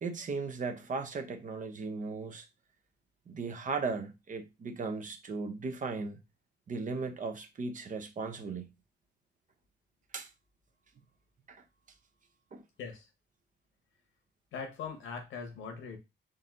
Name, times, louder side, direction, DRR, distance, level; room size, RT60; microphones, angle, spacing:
voice 1, 0.0-2.5 3.3-6.2 6.7-8.7 10.1-10.3 11.5-11.6 12.5-12.6, right 4 dB, 40° right, 0.8 m, -37 dB
voice 2, 14.5-16.0, left 5 dB, 80° left, 1.4 m, -41 dB
3.9 x 2.6 x 3.8 m
cardioid pair, 90°, 20 cm